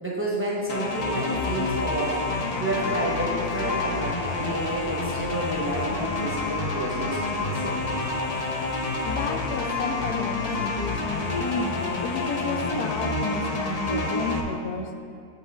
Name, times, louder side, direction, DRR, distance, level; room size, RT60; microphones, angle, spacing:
voice 1, 0.0-2.2 2.6-7.8, right 1 dB, 10° right, -5 dB, 0.9 m, -30 dB
sound 1, 0.7-14.4, left 3 dB, 65° left, 0.3 m, -28 dB
voice 2, 9.0-14.9, left 4 dB, 85° left, 6 dB, 1.1 m, -31 dB
7.4 x 5.7 x 3.7 m, 2.6 s
omnidirectional pair, 1.6 m